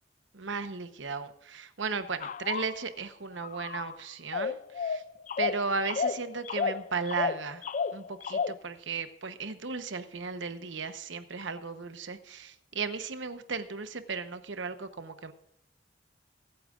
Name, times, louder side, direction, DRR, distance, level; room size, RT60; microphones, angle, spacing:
voice 1, 0.3-5.0 5.4-7.6 7.9-15.3, right 4 dB, 85° right, 10 dB, 0.9 m, -35 dB
sound 1, 2.2-2.7 3.4-4.0 4.3-8.5, left 5 dB, 40° left, 0.3 m, -32 dB
23.5 x 9.0 x 2.5 m, 0.75 s
head